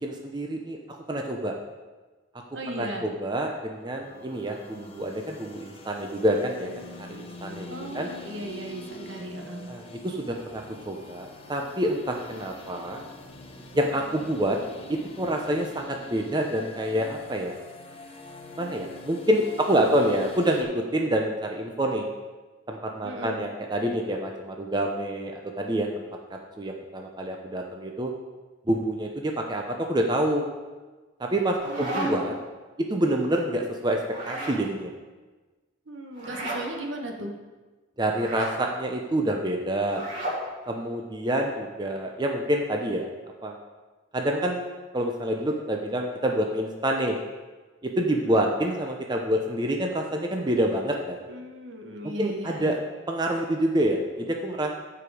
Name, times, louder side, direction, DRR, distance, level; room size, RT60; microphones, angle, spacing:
voice 1, 0.0-1.6 2.7-6.7 7.0-7.7 7.9-8.1 9.7-13.0 13.7-14.6 14.9-17.5 18.6-22.1 22.7-26.0 26.3-28.1 28.7-30.5 31.2-32.3 32.9-34.0 34.3-34.9 38.0-40.0 40.7-43.1 43.4-43.5 44.1-44.6 44.9-47.2 47.8-51.2 52.2-52.8 53.1-54.7, right 1 dB, 20° right, 2 dB, 0.7 m, -27 dB
voice 2, 2.5-3.1 7.7-9.7 19.5-19.9 23.0-23.4 31.6-32.3 35.9-37.3 48.1-48.5 51.3-52.7, right 1 dB, 70° right, 2 dB, 1.3 m, -37 dB
sound 1, 3.7-20.6, left 2 dB, 30° left, 0.8 m, -44 dB
sound 2, 31.3-32.4 34.0-34.6 36.1-36.6 38.1-38.6 39.8-40.4, right 1 dB, 40° right, 3.0 m, -33 dB
14.0 x 4.9 x 4.9 m, 1.3 s
head